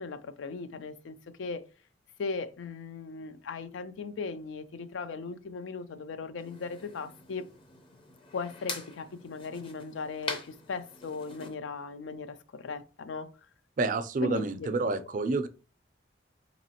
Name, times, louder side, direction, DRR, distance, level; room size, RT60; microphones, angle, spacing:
voice 1, 0.0-1.7 2.2-7.5 8.3-13.3 14.2-15.1, left 4 dB, 80° left, 0.4 m, -38 dB
sound 1, 6.4-11.5, left 3 dB, 30° left, 0.5 m, -43 dB
voice 2, 13.8-15.5, right 3 dB, 45° right, 0.4 m, -29 dB
4.1 x 2.8 x 2.8 m
head